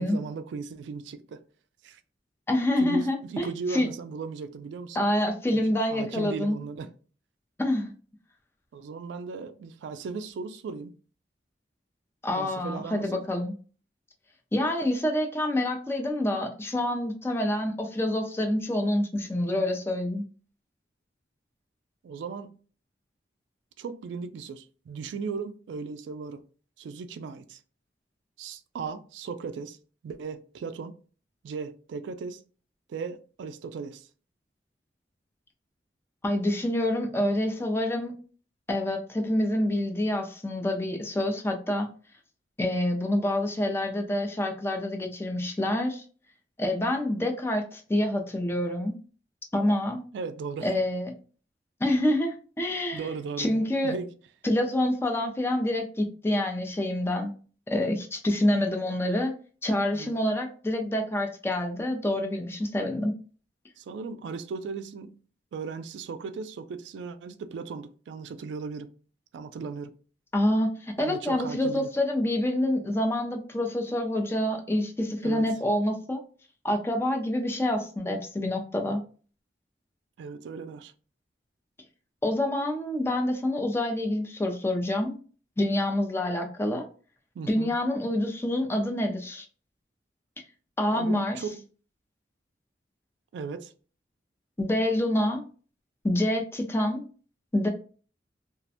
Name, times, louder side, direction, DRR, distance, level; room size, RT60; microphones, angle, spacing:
voice 1, 0.0-1.4 1.8-2.0 2.8-5.0 5.5-6.9 8.7-10.9 12.4-13.2 22.0-22.6 23.8-26.4 26.8-27.6 28.4-29.8 30.0-31.0 31.4-32.4 32.9-34.1 50.1-50.7 52.9-54.1 59.9-60.2 63.8-65.2 65.5-68.9 69.3-69.9 71.0-71.9 75.2-75.5 80.2-80.9 87.4-87.7 90.9-91.6 93.3-93.7, right 5 dB, 90° right, 0.3 m, -37 dB
voice 2, 2.5-3.9 4.9-6.6 7.6-7.9 12.2-13.5 14.5-20.2 36.2-38.1 38.7-41.9 42.6-46.0 46.6-49.0 49.5-50.0 50.6-51.1 51.8-53.1 53.4-54.0 54.4-57.3 57.7-59.3 59.6-63.1 70.3-76.2 76.6-79.0 82.2-85.1 85.6-86.9 87.5-89.5 90.8-91.4 94.6-95.4 96.0-97.0 97.5-97.7, left 1 dB, 15° left, 0.4 m, -27 dB
2.4 x 2.1 x 2.7 m
head